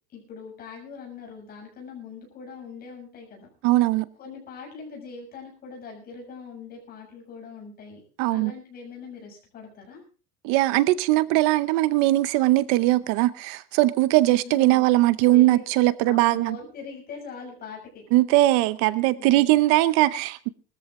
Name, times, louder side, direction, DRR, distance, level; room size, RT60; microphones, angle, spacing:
voice 1, 0.1-3.5 4.2-8.0 8.3-10.0 14.4-14.9 15.3-15.6 16.1-18.0 19.2-19.6, left 5 dB, 30° left, 6.9 m, -41 dB
voice 2, 3.6-4.0 8.2-8.5 10.4-16.6 18.1-20.5, right 17 dB, 65° right, 0.8 m, -20 dB
20.0 x 13.5 x 3.7 m
cardioid pair, 170°, 30 cm